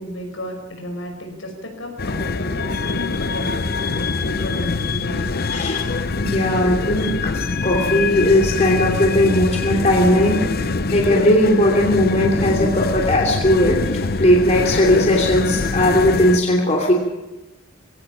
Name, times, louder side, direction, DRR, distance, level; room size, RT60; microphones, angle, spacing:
voice 1, 0.0-5.3, equal, 75° left, 3 dB, 5.8 m, -33 dB
sound 1, 2.0-16.4, left 3 dB, 50° left, 0.8 m, -24 dB
voice 2, 5.5-5.9 6.1-7.3 7.6-13.8 14.2-16.9, left 1 dB, 35° left, 0 dB, 2.9 m, -18 dB
21.0 x 17.5 x 7.4 m, 1.0 s
head